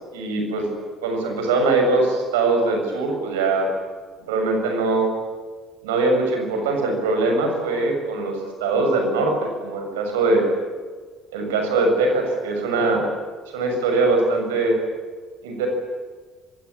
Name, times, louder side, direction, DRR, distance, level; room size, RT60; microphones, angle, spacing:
voice 1, 0.1-0.7 1.0-3.7 4.2-5.1 5.8-10.5 11.3-13.1 13.5-14.8 15.4-15.7, right 3 dB, 70° right, 4 dB, 6.9 m, -21 dB
26.5 x 24.0 x 8.7 m, 1.5 s
figure-of-eight pair, 50°, 0 cm